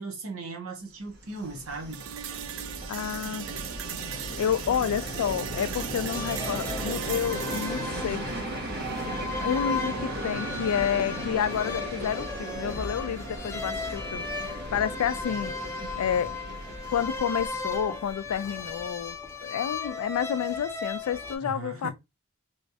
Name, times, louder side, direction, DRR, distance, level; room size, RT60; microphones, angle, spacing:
voice 1, 0.0-2.0 21.4-21.9, right 3 dB, 80° right, 1.3 m, -37 dB
Train, 1.1-18.8, right 1 dB, 50° right, 1.2 m, -36 dB
sound 1, 1.9-9.9, right 10 dB, 65° right, 0.4 m, -39 dB
voice 2, 2.9-3.5 4.4-8.2 9.4-15.5 16.0-16.3 16.9-21.9, left 8 dB, 85° left, 0.3 m, -30 dB
sound 2, 6.1-21.4, left 4 dB, 15° left, 0.7 m, -36 dB
3.2 x 3.1 x 2.7 m
head